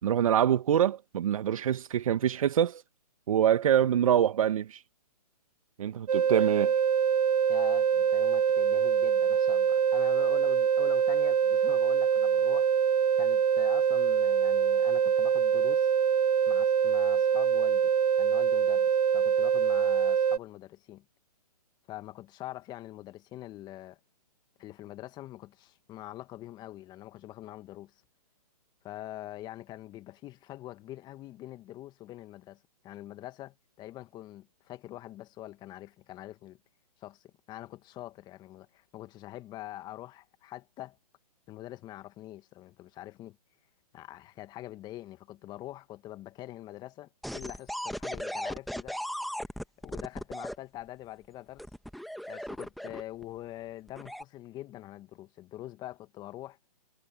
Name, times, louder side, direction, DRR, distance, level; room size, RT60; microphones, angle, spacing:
voice 1, 0.0-2.8 3.3-4.8 5.8-6.7, right 10 dB, 55° right, 1.5 m, -25 dB
sound 1, 6.1-20.4, right 7 dB, 75° right, 0.8 m, -24 dB
voice 2, 7.5-12.7 13.2-15.9 16.5-17.9 18.2-21.0 21.9-24.0 24.6-27.9 28.8-36.6 37.0-41.0 41.5-43.4 43.9-49.4 49.8-51.7 52.3-56.6, left 15 dB, 20° left, 1.9 m, -44 dB
sound 2, 47.2-50.6 51.6-53.2 53.9-54.2, equal, ahead, 1.5 m, -37 dB
hypercardioid pair, 140°, 20 cm